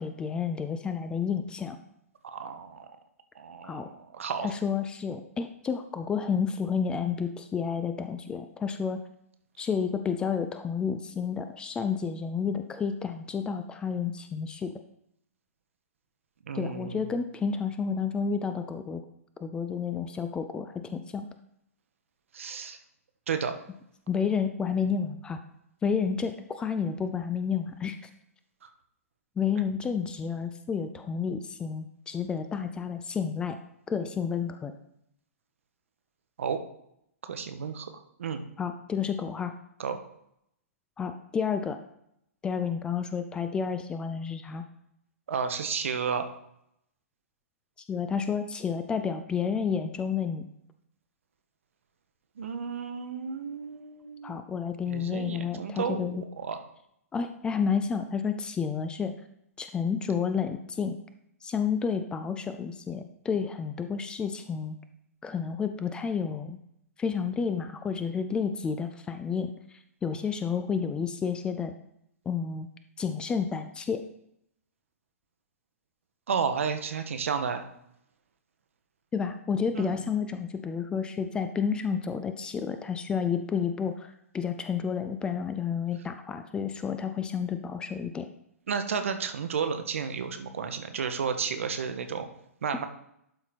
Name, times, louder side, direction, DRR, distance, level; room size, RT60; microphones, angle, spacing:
voice 1, 0.0-1.8 3.6-3.9 4.4-9.0 9.6-14.7 16.5-19.0 19.4-21.3 24.1-25.4 25.8-28.1 29.4-33.6 33.9-34.7 38.6-39.5 41.0-41.8 42.4-44.6 47.9-50.4 54.2-56.2 57.1-59.1 59.6-61.0 61.4-64.8 65.2-66.6 67.0-69.5 70.0-71.7 72.3-72.7 73.0-74.0 79.1-88.3, left 6 dB, 10° left, 9 dB, 0.4 m, -30 dB
voice 2, 2.2-2.9 3.3-4.5 16.5-17.2 22.3-22.8 23.3-23.5 28.6-28.7 36.4-36.6 37.3-37.9 38.2-38.4 39.8-40.0 45.3-46.3 52.4-54.4 54.9-56.6 76.3-77.6 79.7-80.0 88.7-92.3 92.6-92.9, right 6 dB, 55° right, 8 dB, 1.0 m, -32 dB
11.5 x 4.4 x 4.1 m, 0.77 s
figure-of-eight pair, 115°, 8 cm